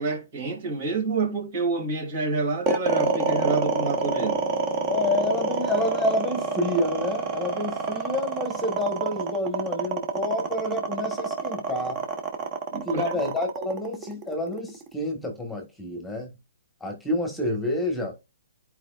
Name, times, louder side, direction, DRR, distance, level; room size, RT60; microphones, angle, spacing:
voice 1, 0.0-4.4 12.7-13.1, right 3 dB, 45° right, 2.8 m, -28 dB
sound 1, 2.7-14.9, right 4 dB, 25° right, 1.3 m, -27 dB
voice 2, 4.9-12.0 12.9-16.3 16.8-18.4, left 1 dB, 5° left, 1.7 m, -28 dB
10.5 x 4.8 x 2.5 m
hypercardioid pair, 150°, 0 cm